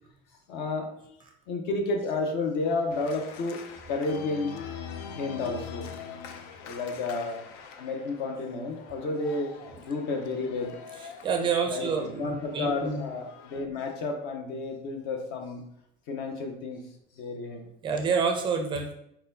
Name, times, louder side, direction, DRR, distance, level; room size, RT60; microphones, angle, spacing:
voice 1, 0.5-1.1 1.5-3.6 3.9-4.5 5.1-5.9 6.6-7.4 7.8-9.5 9.8-10.7 11.7-11.9 12.2-15.6 16.1-16.8 17.2-17.6, left 3 dB, 60° left, 4 dB, 0.9 m, -31 dB
Organ, 2.9-13.7, left 6 dB, 90° left, 0.5 m, -44 dB
voice 2, 11.0-13.1 17.8-18.9, right 5 dB, 25° right, 4 dB, 0.4 m, -28 dB
4.4 x 4.1 x 2.7 m, 0.74 s
cardioid pair, 175°, 20 cm